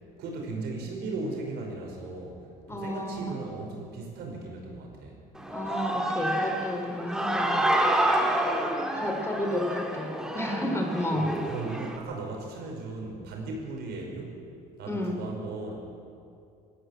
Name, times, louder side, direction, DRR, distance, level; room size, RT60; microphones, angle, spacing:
voice 1, 0.2-2.4 2.7-5.2 11.1-14.4 14.8-15.9, right 3 dB, 75° right, 0 dB, 5.4 m, -37 dB
voice 2, 2.7-3.2 5.5-7.7 8.9-11.3 14.9-15.2, left 1 dB, 15° left, 3 dB, 3.2 m, -31 dB
Human voice / Cheering, 5.4-12.0, right 1 dB, 5° right, 2.4 m, -28 dB
20.0 x 14.5 x 9.1 m, 2.5 s
cardioid pair, 110°, 17 cm